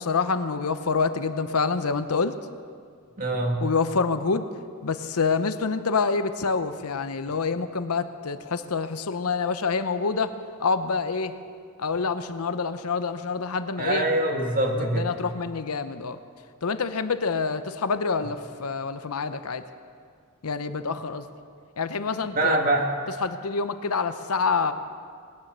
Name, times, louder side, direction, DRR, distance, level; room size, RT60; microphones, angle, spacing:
voice 1, 0.0-2.3 3.6-4.5 4.8-10.3 10.6-11.3 11.8-14.1 14.8-16.2 16.6-19.6 20.4-21.3 21.8-22.6 23.2-24.7, left 4 dB, 75° left, 11 dB, 0.8 m, -27 dB
voice 2, 3.2-3.6 13.8-15.1 22.3-22.9, right 1 dB, 40° right, 2 dB, 1.9 m, -24 dB
19.0 x 10.5 x 6.8 m, 2.1 s
head